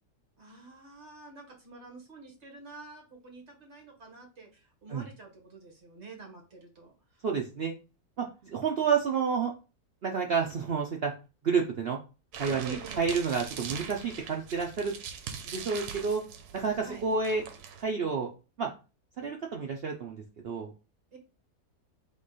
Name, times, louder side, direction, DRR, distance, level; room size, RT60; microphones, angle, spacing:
voice 1, 0.4-7.2 12.6-13.1 16.8-17.1 21.1-21.2, right 3 dB, 45° right, 1 dB, 1.7 m, -48 dB
voice 2, 7.2-7.7 8.2-8.3 8.5-9.5 10.0-11.1 11.4-12.0 12.4-14.9 15.5-16.2 16.5-17.4 17.8-18.3 18.6-18.7 19.2-20.7, right 5 dB, 65° right, 1 dB, 0.6 m, -29 dB
sound 1, 12.3-17.8, right 7 dB, 80° right, 1.2 m, -42 dB
3.7 x 3.0 x 4.0 m, 0.32 s
omnidirectional pair, 1.7 m